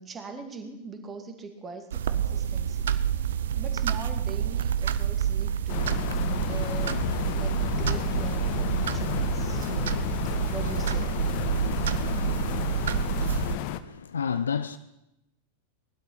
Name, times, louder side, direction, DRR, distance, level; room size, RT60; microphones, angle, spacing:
voice 1, 0.0-2.9 3.3-6.0 6.4-7.0 7.3-10.1 10.5-11.1, right 4 dB, 20° right, 2.4 m, -42 dB
sound 1, 1.9-13.6, right 9 dB, 65° right, 0.7 m, -28 dB
sound 2, 5.7-13.8, left 13 dB, 45° left, 0.8 m, -32 dB
voice 2, 13.5-14.8, left 7 dB, 70° left, 0.6 m, -30 dB
19.5 x 12.0 x 5.7 m
figure-of-eight pair, 90°, 0 cm